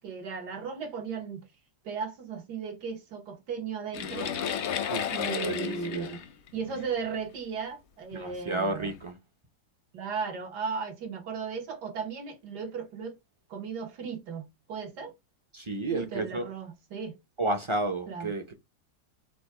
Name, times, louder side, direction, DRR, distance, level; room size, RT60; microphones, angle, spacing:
voice 1, 0.0-1.5 1.9-4.4 5.1-6.2 6.5-8.9 9.9-13.2 13.5-15.1 15.9-17.2 18.1-18.3, right 5 dB, 85° right, 1.8 m, -36 dB
sound 1, 3.9-7.3 8.1-8.2 8.8-9.0, left 8 dB, 60° left, 0.7 m, -33 dB
voice 2, 4.9-6.2 8.1-9.2 15.5-16.5 17.4-18.5, right 2 dB, 50° right, 0.3 m, -32 dB
4.9 x 2.2 x 4.8 m
omnidirectional pair, 1.7 m